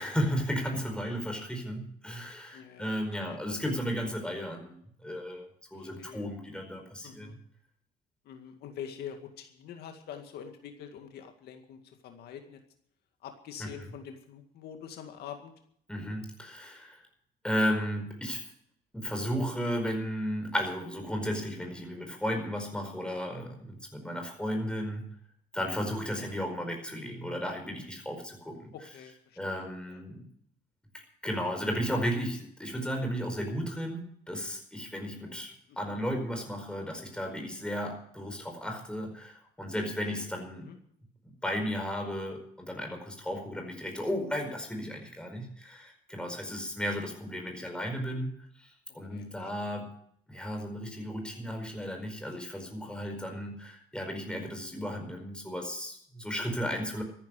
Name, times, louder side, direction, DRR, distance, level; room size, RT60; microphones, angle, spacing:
voice 1, 0.0-7.4 13.6-13.7 15.9-17.0 17.4-18.5 18.9-25.1 25.5-28.7 29.4-30.3 31.2-40.7 41.2-49.9 50.3-57.0, equal, 5° left, 3 dB, 4.8 m, -34 dB
voice 2, 2.5-2.9 3.2-3.4 3.6-3.8 5.7-6.2 7.0-7.3 8.3-12.6 13.2-15.5 28.7-30.0 35.2-35.4 35.7-35.9 40.6-40.8 46.1-46.4 48.9-49.7, left 8 dB, 70° left, 5 dB, 2.1 m, -46 dB
14.0 x 10.5 x 8.2 m, 0.66 s
cardioid pair, 110°, 17 cm